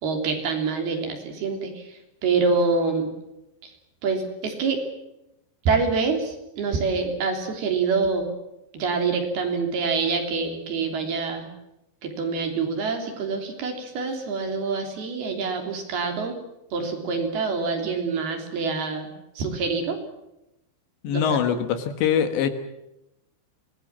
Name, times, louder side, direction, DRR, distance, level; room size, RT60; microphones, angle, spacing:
voice 1, 0.0-3.1 3.6-3.7 4.0-4.8 5.6-8.3 8.7-11.5 12.0-16.4 16.7-20.0 21.1-21.4, right 4 dB, 55° right, 3 dB, 4.9 m, -26 dB
voice 2, 21.0-22.5, left 8 dB, 70° left, 8 dB, 3.6 m, -23 dB
25.0 x 20.5 x 7.4 m, 0.89 s
omnidirectional pair, 5.6 m